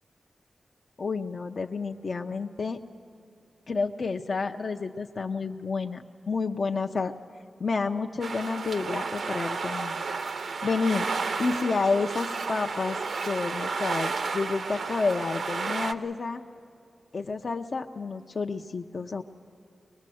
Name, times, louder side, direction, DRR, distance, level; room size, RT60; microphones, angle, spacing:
voice 1, 1.0-2.8 3.7-7.1 7.6-10.1 10.6-11.1 11.4-13.0 13.3-16.4 17.1-19.2, left 4 dB, 50° left, 4 dB, 0.6 m, -30 dB
sound 1, 8.2-15.9, right 4 dB, 75° right, 0.7 m, -32 dB
24.0 x 20.5 x 7.7 m, 2.6 s
wide cardioid pair, 130°, 0 cm